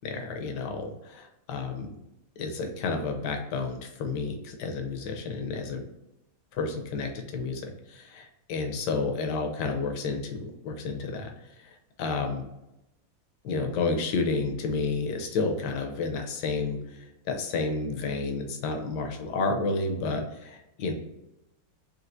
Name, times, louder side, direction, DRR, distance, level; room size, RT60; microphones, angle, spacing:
voice 1, 0.0-1.9 2.4-5.8 6.5-11.3 11.6-12.4 13.4-17.0 17.3-20.9, left 4 dB, 70° left, 4 dB, 1.1 m, -31 dB
4.4 x 3.2 x 2.5 m, 0.90 s
omnidirectional pair, 2.2 m